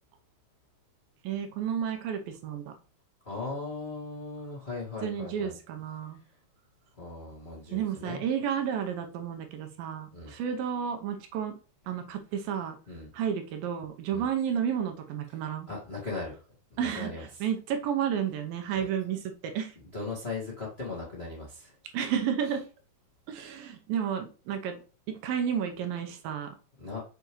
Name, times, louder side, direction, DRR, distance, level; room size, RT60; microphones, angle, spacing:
voice 1, 1.2-2.7 5.0-6.2 7.7-11.6 11.9-12.8 13.1-15.7 16.8-19.7 21.9-22.6 23.3-24.8 25.1-26.5, right 8 dB, 75° right, 6 dB, 2.4 m, -31 dB
voice 2, 3.2-5.5 7.0-8.2 10.1-10.3 12.9-13.1 14.1-14.3 15.7-16.3 16.7-17.2 18.7-18.9 19.9-21.7 26.8-27.0, left 3 dB, 50° left, -3 dB, 0.7 m, -38 dB
7.0 x 6.5 x 3.1 m, 0.36 s
omnidirectional pair, 4.5 m